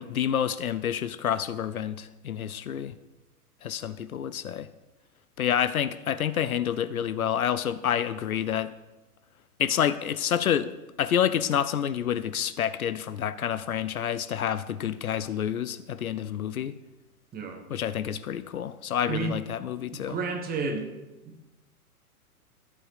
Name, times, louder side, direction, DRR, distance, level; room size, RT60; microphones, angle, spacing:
voice 1, 0.0-2.9 3.6-4.7 5.4-8.7 9.6-16.7 17.7-20.2, left 9 dB, 70° left, 14 dB, 0.8 m, -28 dB
voice 2, 17.3-17.6 19.1-19.4 19.9-20.9 21.3-21.4, right 4 dB, 20° right, 4 dB, 1.8 m, -31 dB
13.5 x 8.6 x 5.0 m, 1.1 s
figure-of-eight pair, 105°, 45 cm